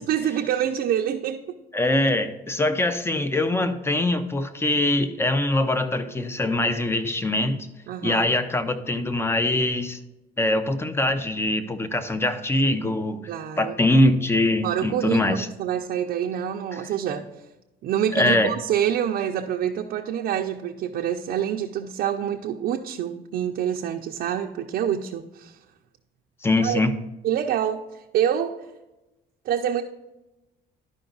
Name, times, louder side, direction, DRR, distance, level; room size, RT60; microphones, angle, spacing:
voice 1, 0.0-1.6 7.9-8.3 13.3-13.8 14.6-17.5 17.8-25.6 26.6-26.8 27.2-28.6 29.4-29.8, right 9 dB, 65° right, 2 dB, 0.6 m, -26 dB
voice 2, 1.7-7.7 8.0-10.0 10.4-13.2 13.6-15.5 18.1-18.5 26.4-26.9, left 2 dB, 15° left, 11 dB, 0.6 m, -23 dB
11.5 x 5.1 x 3.9 m, 0.99 s
cardioid pair, 110°, 17 cm